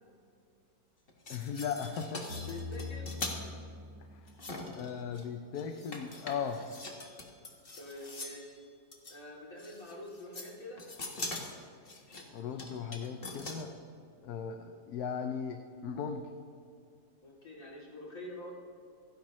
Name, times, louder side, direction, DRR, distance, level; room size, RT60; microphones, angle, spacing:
sound 1, 1.1-3.4 4.3-5.3 5.6-8.5 8.9-9.2 9.6-10.5 10.8-13.6, left 2 dB, 35° left, 1.7 m, -43 dB
voice 1, 1.3-2.3 4.1-4.3 4.7-6.6 12.3-13.7 14.2-16.2, left 7 dB, 70° left, 6 dB, 1.2 m, -37 dB
sound 2, 2.3-4.5, left 3 dB, 85° right, 2.6 m, -42 dB
voice 2, 2.5-3.1 7.8-8.6 9.1-10.8 17.2-18.5, left 2 dB, 55° left, -4 dB, 3.2 m, -46 dB
29.0 x 10.5 x 3.1 m, 2.4 s
omnidirectional pair, 1.7 m